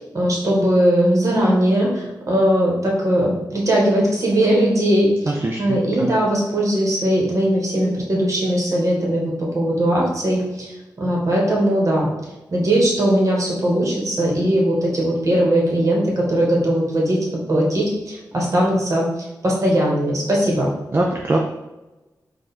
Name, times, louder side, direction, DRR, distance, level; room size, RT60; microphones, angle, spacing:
voice 1, 0.0-10.7 11.0-12.1 12.5-19.1 19.4-20.7, right 1 dB, 50° right, -3 dB, 1.5 m, -19 dB
voice 2, 5.3-6.1 20.9-21.4, right 2 dB, 30° right, 0 dB, 0.5 m, -22 dB
4.9 x 2.5 x 4.2 m, 1.0 s
wide cardioid pair, 100°, 7 cm